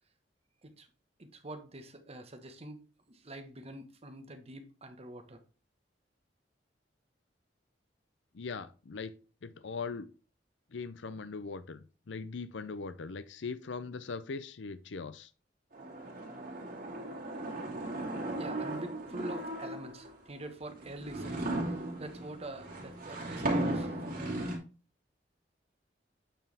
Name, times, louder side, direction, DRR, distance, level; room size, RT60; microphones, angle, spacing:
voice 1, 1.2-5.4 18.4-21.7 22.0-24.4, right 1 dB, 35° right, 1.3 m, -45 dB
voice 2, 8.3-9.1 9.4-10.1 10.7-15.3, left 4 dB, 85° left, 0.6 m, -40 dB
sound 1, 15.7-20.1 20.7-24.6, right 1 dB, 55° right, 3.0 m, -36 dB
9.0 x 4.7 x 3.5 m
head